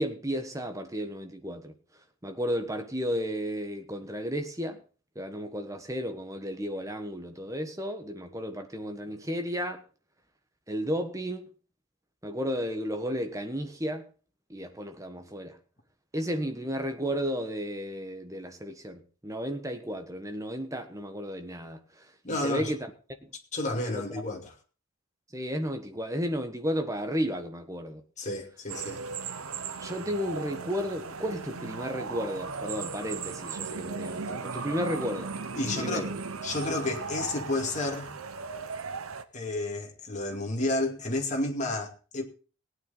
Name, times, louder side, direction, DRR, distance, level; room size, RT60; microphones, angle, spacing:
voice 1, 0.0-1.7 2.2-4.8 5.1-9.8 10.7-11.5 12.2-14.1 14.5-15.6 16.1-22.9 23.2-23.3 23.9-24.0 25.3-28.0 29.8-35.3 35.6-36.1, equal, 15° right, 1.4 m, -33 dB
voice 2, 22.2-22.7 23.5-24.5 28.2-29.0 35.5-36.1 36.4-38.1 39.3-42.2, left 2 dB, 35° left, 2.4 m, -31 dB
sound 1, 28.7-39.2, right 5 dB, 75° right, 1.0 m, -37 dB
18.0 x 9.5 x 4.0 m
head